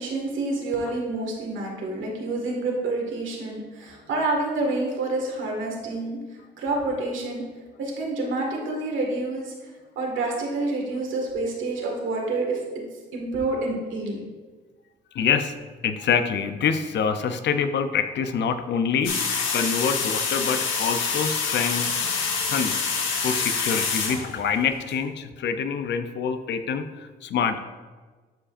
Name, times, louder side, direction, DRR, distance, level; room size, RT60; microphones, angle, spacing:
voice 1, 0.0-6.2 6.6-7.4 7.8-9.5 10.0-12.6 13.1-14.2, right 2 dB, 75° right, 0 dB, 1.8 m, -28 dB
voice 2, 15.1-15.5 15.8-21.9 22.5-27.6, left 6 dB, 60° left, 8 dB, 0.6 m, -26 dB
sound 1, 19.0-24.9, left 5 dB, 80° left, 1.1 m, -26 dB
11.5 x 5.0 x 2.5 m, 1.4 s
cardioid pair, 90°, 20 cm